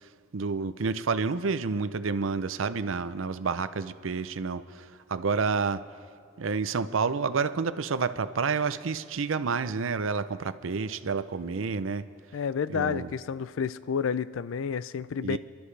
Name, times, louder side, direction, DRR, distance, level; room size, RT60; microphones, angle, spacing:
voice 1, 0.3-5.8 6.4-12.1 12.7-13.1 15.2-15.4, right 5 dB, 80° right, 14 dB, 0.6 m, -29 dB
voice 2, 12.3-15.4, left 6 dB, 75° left, 16 dB, 0.4 m, -30 dB
27.0 x 12.0 x 3.3 m, 2.1 s
head